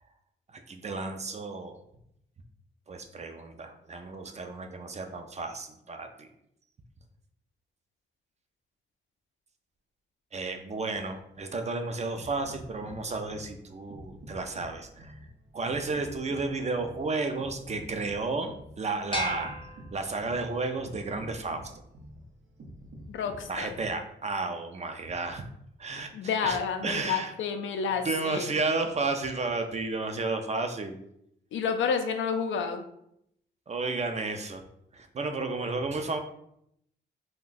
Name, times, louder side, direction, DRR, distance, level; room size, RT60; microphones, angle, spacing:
voice 1, 0.5-1.8 2.9-6.3 10.3-15.2 15.5-19.5 19.9-21.7 23.5-25.5 25.8-27.3 28.0-31.0 33.7-34.6 34.9-36.2, right 3 dB, 35° right, 6 dB, 0.4 m, -32 dB
sound 1, 12.1-24.1, equal, 90° right, 0.6 m, -48 dB
sound 2, 19.1-20.6, left 1 dB, 25° left, 0.6 m, -36 dB
voice 2, 23.1-23.7 26.1-28.5 31.5-32.8, left 6 dB, 90° left, 6 dB, 0.4 m, -30 dB
2.5 x 2.1 x 3.8 m, 0.75 s
cardioid pair, 80°, 19 cm